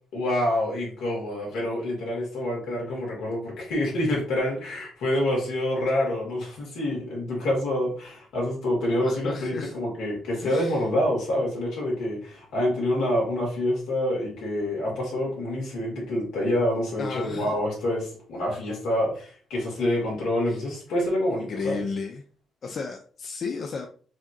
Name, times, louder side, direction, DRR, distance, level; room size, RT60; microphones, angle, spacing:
voice 1, 0.1-21.8, left 1 dB, 85° left, -2 dB, 2.0 m, -27 dB
voice 2, 9.0-9.7 10.4-10.8 17.0-17.5 20.5-20.6 21.3-22.2 22.6-23.9, left 4 dB, 50° left, 3 dB, 0.5 m, -33 dB
4.8 x 2.9 x 2.5 m, 0.43 s
cardioid pair, 90°, 0 cm